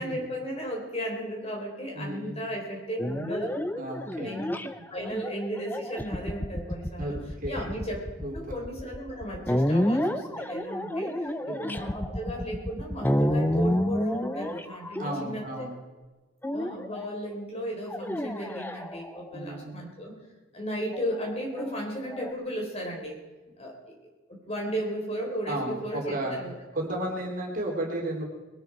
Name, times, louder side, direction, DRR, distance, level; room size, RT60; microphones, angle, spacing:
voice 1, 0.0-3.5 4.2-4.4 4.9-7.2 7.5-8.0 8.3-15.6 16.5-20.1 20.5-23.2 23.6-24.0 24.3-26.5, equal, 30° left, 0 dB, 4.1 m, -35 dB
voice 2, 1.9-2.4 3.8-4.4 7.0-7.1 7.4-7.7 8.2-8.5 11.5-11.8 14.9-15.8 19.3-19.8 25.5-26.4 26.7-28.2, right 1 dB, 45° right, 0 dB, 3.4 m, -33 dB
sound 1, 3.0-15.6 16.4-17.0 17.9-19.4 20.9-22.3, equal, 10° left, 0.7 m, -30 dB
21.5 x 12.5 x 4.6 m, 1.2 s
head